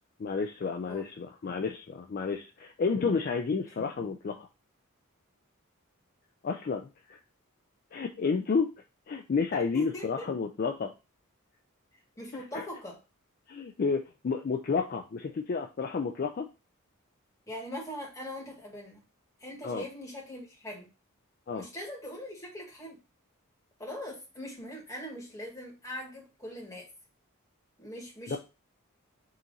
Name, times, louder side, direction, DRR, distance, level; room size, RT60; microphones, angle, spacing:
voice 1, 0.2-4.5 6.4-7.2 7.9-8.7 9.1-10.9 12.5-12.7 13.5-16.5 19.6-19.8 21.5-21.6 28.3-28.4, left 5 dB, 45° left, 4 dB, 0.4 m, -31 dB
voice 2, 9.5-10.3 12.2-13.0 17.5-19.0 19.4-20.9 21.5-23.0 23.8-26.9 27.8-28.4, left 1 dB, 15° left, -2 dB, 1.4 m, -41 dB
3.7 x 2.9 x 3.9 m, 0.28 s
head